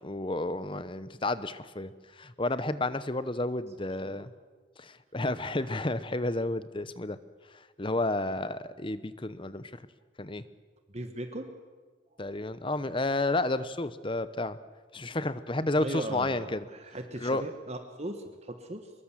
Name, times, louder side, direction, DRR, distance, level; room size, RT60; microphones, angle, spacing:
voice 1, 0.0-4.3 4.8-7.2 7.5-9.7 10.2-10.4 12.2-14.6 14.9-16.7 17.2-17.4, left 2 dB, 25° left, 14 dB, 0.9 m, -31 dB
voice 2, 10.9-11.5 15.8-18.9, right 1 dB, 30° right, 6 dB, 1.5 m, -38 dB
24.0 x 21.5 x 7.5 m, 1.4 s
head